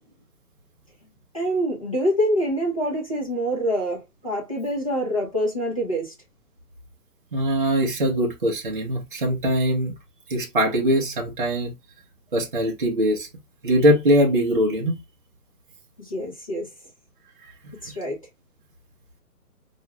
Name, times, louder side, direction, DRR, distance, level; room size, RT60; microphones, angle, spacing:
voice 1, 1.3-6.1 16.0-16.7 17.8-18.2, equal, 25° left, 0.6 m, -25 dB
voice 2, 7.3-9.9 10.3-11.7 12.3-13.3 13.6-15.0, equal, 35° right, 0.6 m, -21 dB
2.4 x 2.2 x 2.8 m
hypercardioid pair, 170°, 46 cm